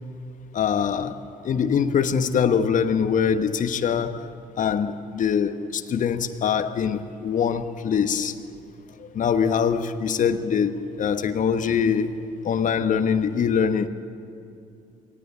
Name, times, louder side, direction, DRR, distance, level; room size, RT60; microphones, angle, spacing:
voice 1, 0.5-4.3 4.6-8.3 9.0-12.2 12.4-13.9, left 7 dB, 45° left, 1.2 m, -23 dB
23.5 x 18.5 x 8.6 m
hypercardioid pair, 55°, 18 cm